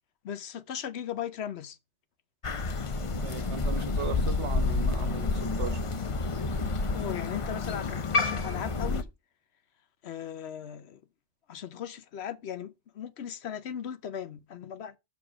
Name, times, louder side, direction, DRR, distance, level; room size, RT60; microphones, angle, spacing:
voice 1, 0.2-1.8 6.9-9.1 10.0-11.0 11.5-15.0, left 9 dB, 70° left, 1.0 m, -38 dB
Crow, 2.4-9.0, left 3 dB, 40° left, 0.5 m, -29 dB
voice 2, 3.0-5.8, right 6 dB, 80° right, 1.4 m, -38 dB
5.8 x 4.7 x 6.0 m
omnidirectional pair, 1.2 m